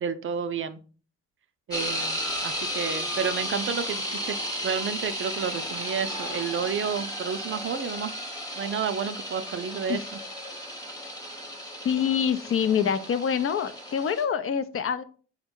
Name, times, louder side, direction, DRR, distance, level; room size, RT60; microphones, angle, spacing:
voice 1, 0.0-0.8 1.7-4.4 4.6-8.1 8.6-10.0, right 6 dB, 45° right, 10 dB, 0.5 m, -30 dB
sound 1, 1.7-14.2, equal, 10° left, 0.9 m, -34 dB
voice 2, 11.8-15.0, left 7 dB, 50° left, 12 dB, 0.5 m, -26 dB
3.7 x 2.2 x 4.4 m, 0.39 s
supercardioid pair, 50°, 29 cm